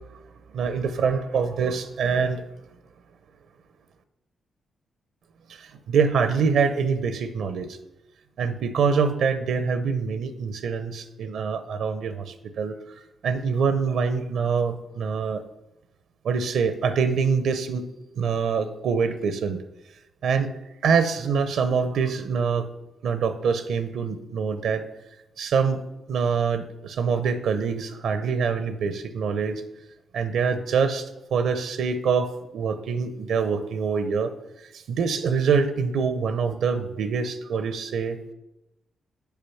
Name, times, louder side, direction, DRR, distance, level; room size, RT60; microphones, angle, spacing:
voice 1, 0.5-2.4 5.5-7.7 8.4-13.0 13.2-15.4 16.2-17.9 18.2-19.6 20.2-20.5 20.8-22.7 23.0-24.8 25.4-25.8 26.1-29.6 30.1-34.3 34.7-38.2, right 5 dB, 80° right, 11 dB, 0.6 m, -25 dB
7.1 x 4.9 x 5.7 m, 0.94 s
supercardioid pair, 55°, 0 cm